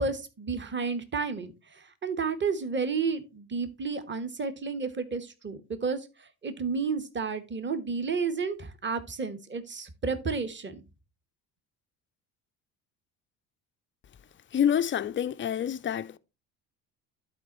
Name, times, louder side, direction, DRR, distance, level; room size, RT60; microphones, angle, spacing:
voice 1, 0.0-6.1 6.4-10.8, right 4 dB, 20° right, 1.2 m, -31 dB
voice 2, 14.5-16.2, left 9 dB, 25° left, 0.5 m, -27 dB
12.0 x 4.3 x 3.0 m
hypercardioid pair, 60°, 49 cm